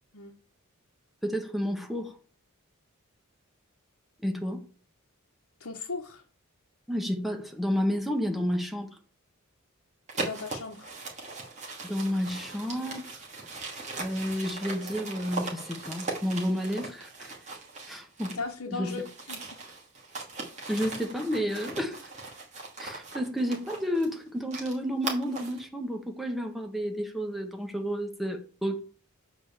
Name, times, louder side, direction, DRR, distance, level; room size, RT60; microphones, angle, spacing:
voice 1, 1.2-2.2 4.2-4.7 6.9-8.9 11.8-13.2 14.0-17.3 17.9-18.4 18.7-19.0 20.7-22.1 22.8-28.8, equal, ahead, 1.2 m, -31 dB
voice 2, 5.6-6.2 10.1-10.9 18.4-19.4, left 4 dB, 80° left, 1.1 m, -37 dB
sound 1, 10.1-18.5 18.8-25.6, right 3 dB, 35° right, 2.5 m, -39 dB
7.0 x 5.1 x 7.2 m
head